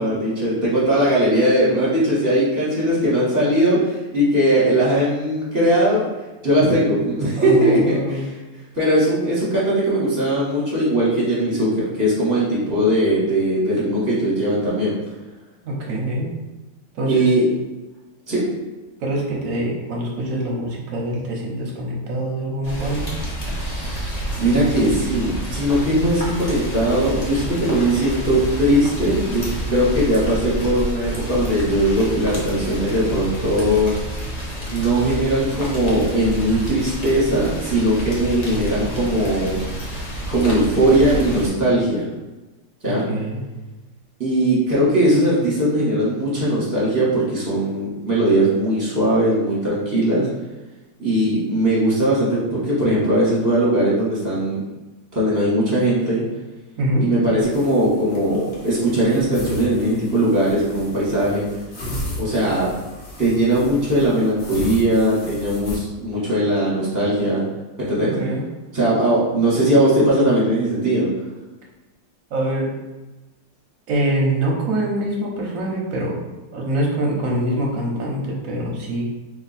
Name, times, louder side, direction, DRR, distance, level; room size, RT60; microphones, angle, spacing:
voice 1, 0.0-6.0 6.4-8.3 8.7-11.7 11.9-14.9 17.0-17.4 18.3-18.4 23.6-33.9 34.7-39.6 40.3-42.0 42.8-43.1 44.2-50.3 51.0-54.6 55.1-56.2 57.0-61.4 62.2-62.7 63.2-67.4 67.8-68.2 68.7-71.1, right 1 dB, 10° right, -8 dB, 1.2 m, -19 dB
voice 2, 7.4-8.2 15.6-16.3 16.9-17.3 19.0-23.1 43.0-43.4 56.8-57.0 68.0-68.4 72.3-72.7 73.9-76.2 76.5-79.1, right 1 dB, 55° right, -2 dB, 1.1 m, -24 dB
Rain, 22.6-41.5, equal, 85° left, 0.3 m, -29 dB
sound 1, 57.4-65.8, equal, 45° left, 0.9 m, -35 dB
3.1 x 2.9 x 4.1 m, 1.1 s
omnidirectional pair, 2.0 m